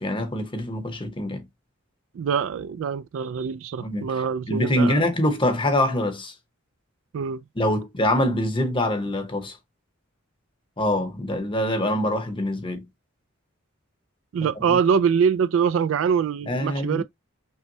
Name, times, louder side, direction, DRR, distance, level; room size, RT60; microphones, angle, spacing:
voice 1, 0.0-1.4 3.8-4.1 4.5-6.3 7.6-9.6 10.8-12.8 14.7-14.8 16.5-17.0, left 1 dB, 25° left, 0.9 m, -24 dB
voice 2, 2.1-5.0 7.1-7.4 14.3-17.0, right 6 dB, 70° right, 0.3 m, -24 dB
5.5 x 2.2 x 2.7 m
head